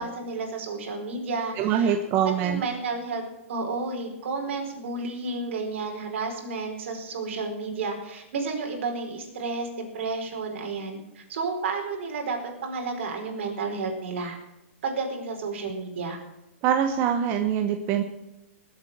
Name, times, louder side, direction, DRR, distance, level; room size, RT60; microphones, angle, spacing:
voice 1, 0.0-2.0 2.2-3.2 3.5-9.7 9.9-14.4 14.8-16.2, right 4 dB, 65° right, 3 dB, 4.6 m, -31 dB
voice 2, 1.6-2.6 16.6-18.0, right 8 dB, 30° right, 6 dB, 1.0 m, -24 dB
20.0 x 8.1 x 6.2 m, 0.95 s
hypercardioid pair, 155°, 7 cm